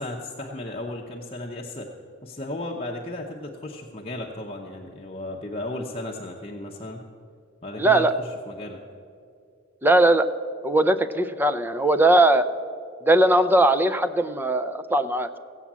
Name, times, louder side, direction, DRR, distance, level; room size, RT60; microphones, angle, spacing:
voice 1, 0.0-1.9 2.2-7.0 7.6-8.8, left 1 dB, 30° left, -1 dB, 0.8 m, -35 dB
voice 2, 7.8-8.1 9.8-10.3 10.6-12.5 13.0-15.3, right 1 dB, 10° right, 11 dB, 0.5 m, -19 dB
15.5 x 8.2 x 7.4 m, 2.4 s
head